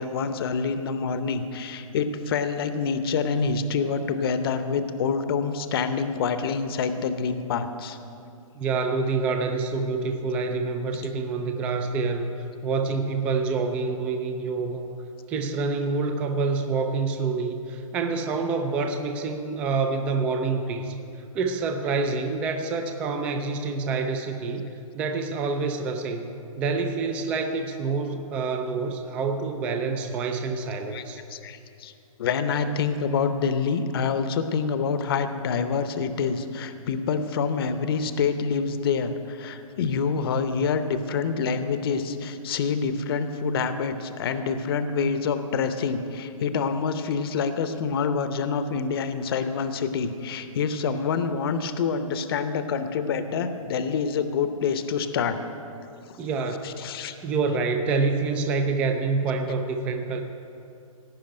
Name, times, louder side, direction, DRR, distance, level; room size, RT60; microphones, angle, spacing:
voice 1, 0.0-8.0 30.9-31.0 31.3-31.9 32.2-55.4 56.6-57.1, left 5 dB, 40° left, 9 dB, 0.8 m, -26 dB
voice 2, 8.6-12.3 12.6-14.9 15.3-20.9 21.3-24.7 24.9-31.2 56.2-56.7 57.2-60.2, right 4 dB, 5° right, 5 dB, 0.3 m, -27 dB
16.5 x 5.6 x 8.9 m, 2.6 s
hypercardioid pair, 160°, 18 cm